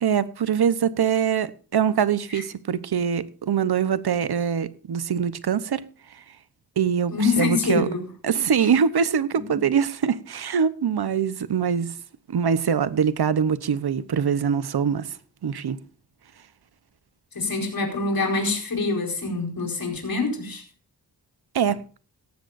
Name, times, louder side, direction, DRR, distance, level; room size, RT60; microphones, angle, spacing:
voice 1, 0.0-5.8 6.8-7.9 8.2-12.0 12.3-15.1 15.4-15.8 21.5-21.8, right 7 dB, 75° right, 1.0 m, -23 dB
voice 2, 7.1-8.1 9.5-9.6 17.3-20.6, left 3 dB, 65° left, 4.7 m, -25 dB
17.5 x 14.5 x 2.6 m
wide cardioid pair, 90°, 38 cm